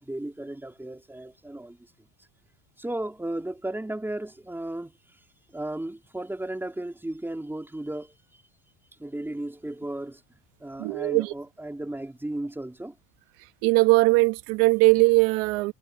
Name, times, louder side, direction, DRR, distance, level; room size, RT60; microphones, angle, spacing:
voice 1, 0.0-1.8 2.8-4.9 5.5-8.1 9.0-10.2 10.6-12.9, right 1 dB, 5° right, 3.6 m, -34 dB
voice 2, 10.8-11.3 13.6-15.7, right 24 dB, 80° right, 1.5 m, -20 dB
cardioid pair, 140°, 45 cm